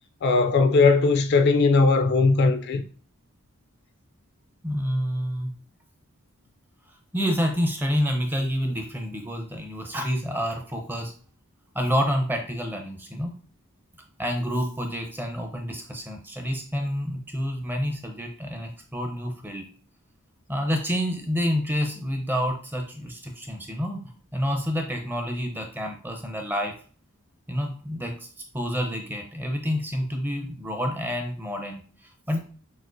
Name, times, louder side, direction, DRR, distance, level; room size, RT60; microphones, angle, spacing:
voice 1, 0.2-2.8, left 3 dB, 50° left, 0.3 m, -19 dB
voice 2, 4.6-5.6 7.1-11.1 11.7-13.4 14.2-19.7 20.5-26.7 27.5-28.3 28.5-32.4, equal, 10° right, 0.5 m, -28 dB
6.2 x 2.4 x 2.5 m
head